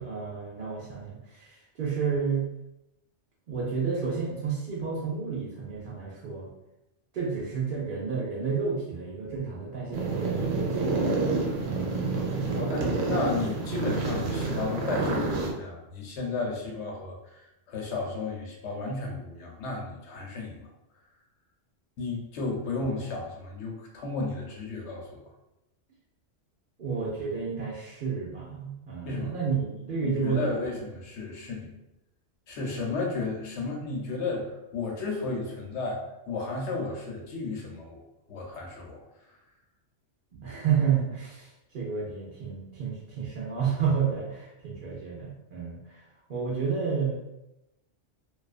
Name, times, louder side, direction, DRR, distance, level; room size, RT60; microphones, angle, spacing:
voice 1, 0.0-2.5 3.5-6.5 7.1-11.1 11.6-13.5 26.8-30.5 40.3-47.2, right 6 dB, 55° right, -4 dB, 0.6 m, -31 dB
sound 1, 9.9-15.5, right 3 dB, 80° right, 0.9 m, -28 dB
voice 2, 12.7-20.7 22.0-25.2 29.0-29.3 30.0-31.7 32.5-39.0 39.3-39.4, left 3 dB, 70° left, 0 dB, 0.9 m, -33 dB
2.4 x 2.3 x 2.3 m, 0.91 s
omnidirectional pair, 1.3 m